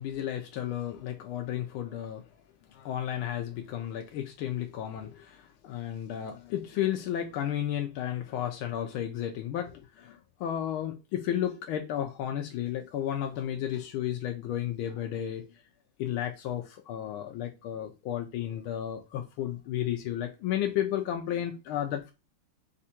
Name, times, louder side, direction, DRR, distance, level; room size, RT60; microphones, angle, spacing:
voice 1, 0.0-2.2 2.7-15.5 16.0-22.1, left 11 dB, 80° left, 1.4 m, -33 dB
4.3 x 2.5 x 4.2 m
omnidirectional pair, 2.4 m